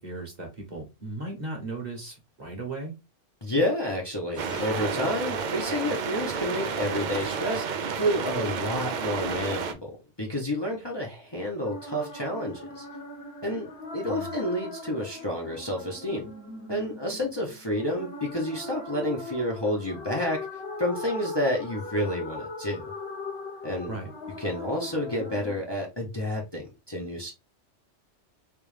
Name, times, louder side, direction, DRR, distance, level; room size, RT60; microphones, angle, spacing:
voice 1, 0.0-2.9 14.1-14.3 23.9-24.1, right 2 dB, 40° right, 1.1 m, -37 dB
voice 2, 3.4-12.9 13.4-16.3 16.7-20.5 20.8-22.9 23.6-24.0 24.4-27.3, left 1 dB, 25° left, 0.8 m, -30 dB
sound 1, 4.3-6.2, equal, 75° left, 1.3 m, -44 dB
sound 2, 4.4-9.7, right 6 dB, 55° right, 0.5 m, -31 dB
sound 3, 11.6-25.6, left 2 dB, 55° left, 1.4 m, -39 dB
3.4 x 3.0 x 3.2 m
omnidirectional pair, 1.2 m